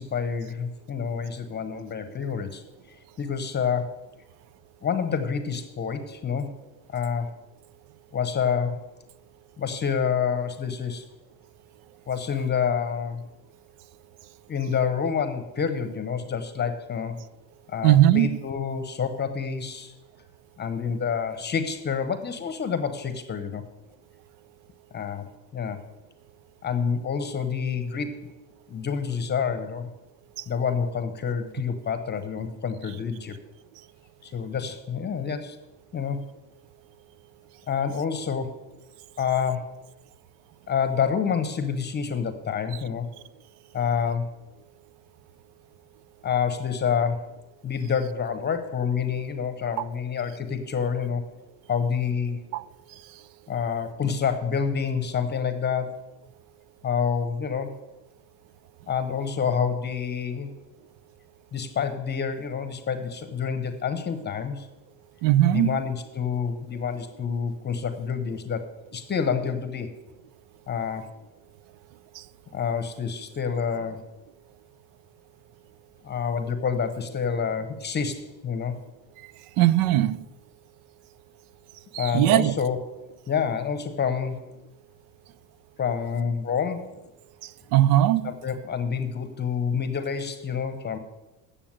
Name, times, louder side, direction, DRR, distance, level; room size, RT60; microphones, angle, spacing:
voice 1, 0.0-2.6 3.2-4.0 4.8-6.5 6.9-7.3 8.1-8.8 9.6-11.0 12.1-13.2 14.5-17.2 17.7-19.9 20.6-23.6 24.9-25.8 26.6-28.4 28.7-29.9 30.5-33.4 34.2-35.6 35.9-36.2 37.7-38.5 39.2-39.7 40.7-43.1 43.7-44.3 46.2-47.3 47.6-51.2 51.7-52.4 53.5-56.0 56.8-57.7 58.9-60.5 61.5-64.7 65.5-69.9 70.7-71.1 72.5-74.0 76.0-78.8 82.0-82.8 83.3-84.5 85.8-87.0 88.2-91.0, left 6 dB, 30° left, 0.8 m, -28 dB
voice 2, 17.8-18.5 30.4-30.5 49.8-49.9 52.5-52.6 65.2-65.8 72.1-72.2 79.6-80.2 81.9-82.5 87.4-88.4, right 13 dB, 80° right, 0.6 m, -20 dB
8.7 x 6.9 x 7.4 m
cardioid pair, 125°, 37 cm